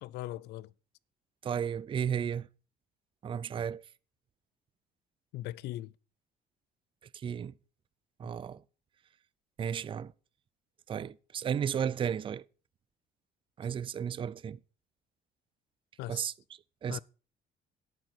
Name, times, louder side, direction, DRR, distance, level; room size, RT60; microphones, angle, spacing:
voice 1, 0.0-0.7 5.3-5.9 16.0-16.2 16.9-17.0, left 15 dB, 80° left, 0.5 m, -39 dB
voice 2, 1.4-2.5 3.2-3.8 7.2-7.5 8.2-8.6 9.6-10.1 10.9-12.4 13.6-14.6 16.1-16.3 16.8-17.0, right 8 dB, 30° right, 0.4 m, -33 dB
11.5 x 9.1 x 4.5 m
cardioid pair, 110°, 17 cm